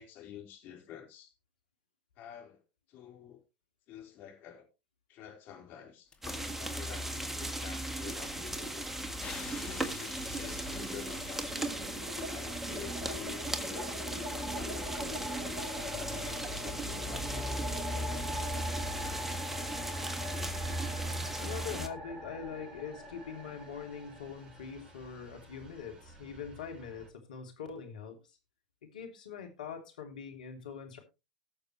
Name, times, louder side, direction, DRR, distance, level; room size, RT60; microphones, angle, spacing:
voice 1, 0.0-1.3 2.2-2.6 2.9-3.4 3.9-4.7 5.1-6.1 6.5-8.9 9.7-11.7 12.3-15.4 15.9-17.8, left 9 dB, 45° left, 4.3 m, -49 dB
sound 1, 6.1-6.7 7.1-11.5, left 5 dB, 20° left, 2.3 m, -48 dB
sound 2, 6.2-21.9, right 1 dB, 5° right, 1.5 m, -37 dB
sound 3, 8.0-8.8 9.0-27.1, left 1 dB, 25° right, 5.7 m, -44 dB
voice 2, 21.4-28.4 28.9-31.0, left 7 dB, 75° left, 3.0 m, -43 dB
19.5 x 6.7 x 3.1 m
hypercardioid pair, 95°, 4 cm